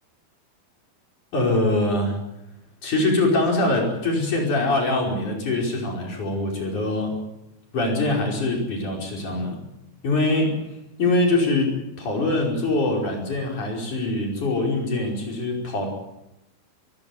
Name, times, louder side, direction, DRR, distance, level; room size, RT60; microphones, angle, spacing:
voice 1, 1.3-2.2 2.8-7.2 7.7-9.6 10.0-15.9, left 2 dB, 50° left, 0 dB, 6.5 m, -23 dB
23.0 x 16.0 x 9.8 m, 0.88 s
omnidirectional pair, 4.5 m